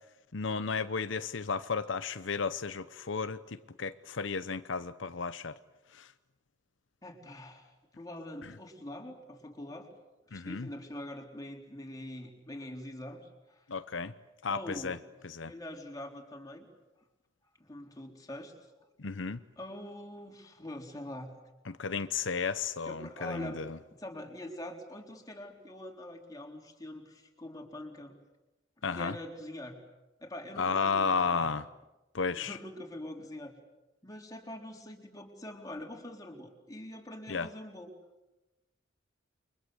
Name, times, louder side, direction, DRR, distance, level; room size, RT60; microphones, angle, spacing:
voice 1, 0.3-5.5 5.9-6.1 10.3-10.7 13.7-14.1 14.4-15.0 15.2-15.5 19.0-19.4 21.7-23.7 28.8-29.1 30.6-31.6 32.1-32.6 37.3-37.5, left 5 dB, 80° left, 0.9 m, -33 dB
voice 2, 7.0-9.9 10.3-13.6 14.5-15.0 15.5-16.7 17.6-18.5 19.6-21.4 22.8-23.6 23.9-28.1 28.8-29.8 30.2-31.5 32.3-33.5 34.0-37.9, left 1 dB, 20° left, 4.0 m, -44 dB
29.5 x 24.0 x 7.9 m
head